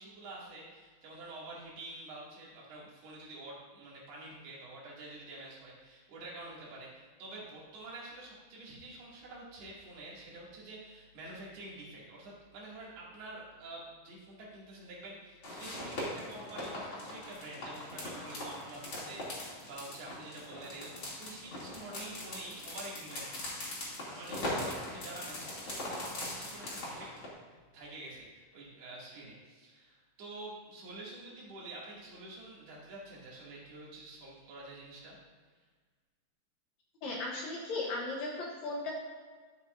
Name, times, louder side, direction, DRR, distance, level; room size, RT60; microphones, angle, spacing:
voice 1, 0.0-27.1 27.7-35.2, right 2 dB, 90° right, -6 dB, 4.4 m, -48 dB
sound 1, 15.4-27.3, left 1 dB, 35° left, 2.9 m, -41 dB
voice 2, 37.0-38.9, left 2 dB, 65° left, -2 dB, 1.9 m, -36 dB
13.0 x 8.4 x 2.6 m, 1.5 s
omnidirectional pair, 4.4 m